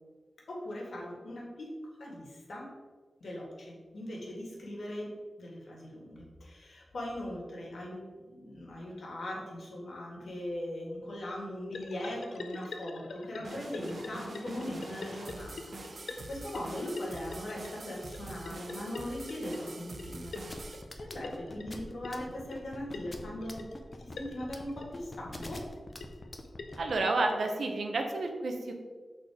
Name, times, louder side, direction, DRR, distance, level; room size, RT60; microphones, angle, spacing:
voice 1, 0.5-2.7 3.2-5.1 5.4-15.6 15.9-23.7 24.0-25.6, left 1 dB, 75° left, -2 dB, 1.9 m, -40 dB
sound 1, 11.7-27.0, left 3 dB, 90° left, 0.5 m, -46 dB
sound 2, 13.4-20.8, right 2 dB, 55° right, 0.7 m, -45 dB
sound 3, 20.5-26.9, left 2 dB, 30° left, 0.8 m, -43 dB
voice 2, 26.8-28.7, right 2 dB, 80° right, 3 dB, 0.9 m, -30 dB
6.5 x 4.2 x 4.9 m, 1.4 s
wide cardioid pair, 105°, 0 cm